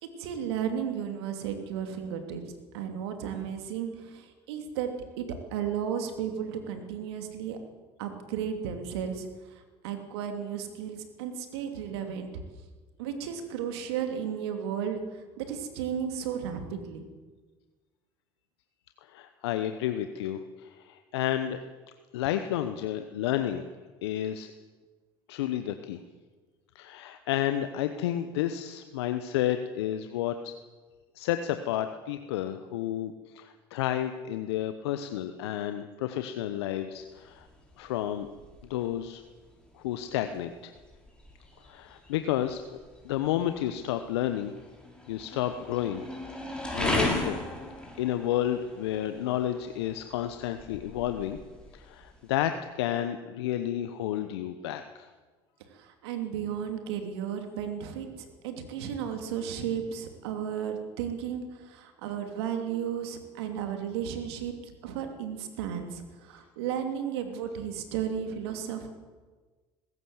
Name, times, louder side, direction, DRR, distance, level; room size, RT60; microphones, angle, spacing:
voice 1, 0.0-2.4 2.7-4.9 5.2-7.6 8.0-12.4 13.0-17.1 55.7-64.5 64.8-68.9, right 8 dB, 80° right, 6 dB, 2.8 m, -34 dB
voice 2, 19.0-21.6 22.1-23.6 24.0-24.5 25.3-26.0 26.7-30.5 31.1-37.5 37.8-38.3 38.7-39.2 39.8-40.7 41.6-42.6 43.0-44.5 45.1-46.1 46.7-47.4 48.0-51.4 51.7-55.1, left 11 dB, 80° left, 9 dB, 1.0 m, -31 dB
sound 1, 36.9-52.5, left 1 dB, 5° left, 6.4 m, -38 dB
20.0 x 16.5 x 8.1 m, 1.3 s
hypercardioid pair, 65°, 13 cm